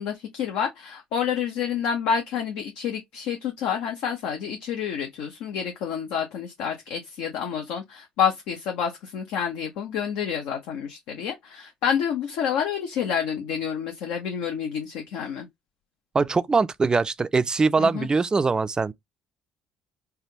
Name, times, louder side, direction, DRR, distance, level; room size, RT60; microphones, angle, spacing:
voice 1, 0.0-15.5 17.8-18.1, left 7 dB, 70° left, 0.6 m, -28 dB
voice 2, 16.1-18.9, right 4 dB, 25° right, 0.3 m, -22 dB
3.4 x 2.2 x 2.7 m
hypercardioid pair, 55°, 3 cm